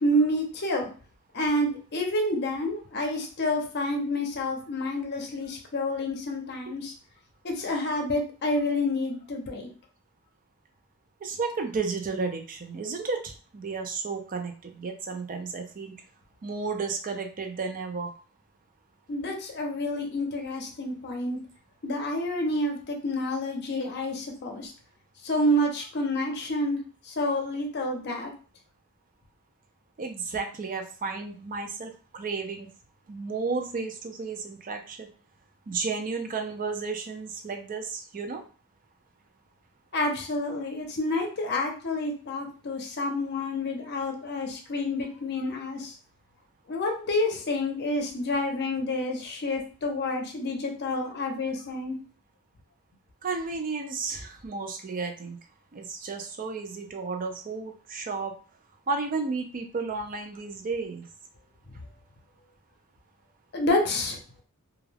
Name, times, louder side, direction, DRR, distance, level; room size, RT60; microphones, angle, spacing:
voice 1, 0.0-0.9 1.3-6.9 7.4-9.7 19.1-21.4 21.8-24.7 25.2-26.8 27.1-28.3 39.9-45.9 46.7-51.9 63.5-64.2, left 1 dB, 50° left, 2 dB, 0.7 m, -28 dB
voice 2, 11.2-15.9 16.4-18.1 30.0-32.7 33.1-35.1 35.7-38.4 53.2-55.4 55.7-58.3 58.9-61.0, right 4 dB, 40° right, 5 dB, 0.4 m, -33 dB
2.3 x 2.2 x 3.2 m, 0.38 s
head